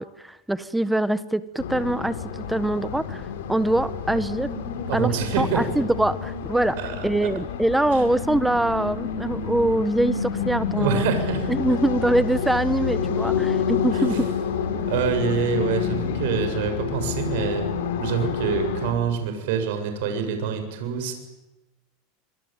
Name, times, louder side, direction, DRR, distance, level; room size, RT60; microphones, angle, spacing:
voice 1, 0.0-4.5 4.9-6.8 7.0-11.1 11.5-14.2, right 1 dB, 5° right, 14 dB, 1.2 m, -24 dB
sound 1, 1.6-18.9, left 6 dB, 85° left, 5.8 m, -28 dB
voice 2, 4.9-5.6 6.8-7.3 7.9-8.1 10.8-11.5 13.9-14.1 14.9-21.1, right 7 dB, 70° right, 7 dB, 7.3 m, -26 dB
26.5 x 25.0 x 9.0 m, 1.0 s
supercardioid pair, 130°, 0 cm